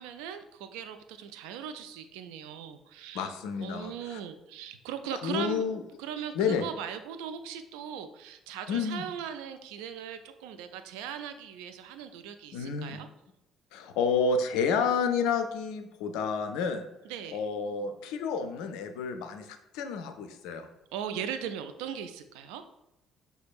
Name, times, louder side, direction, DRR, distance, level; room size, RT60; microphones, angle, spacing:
voice 1, 0.0-3.3 3.6-5.7 6.0-13.1 17.0-17.4 20.9-22.6, right 8 dB, 65° right, 9 dB, 0.3 m, -39 dB
voice 2, 3.1-4.2 5.2-5.8 6.3-6.7 8.7-9.1 12.5-13.0 13.7-16.8 17.3-20.7, left 5 dB, 60° left, 7 dB, 0.4 m, -30 dB
5.9 x 2.7 x 2.3 m, 0.86 s
figure-of-eight pair, 50°, 0 cm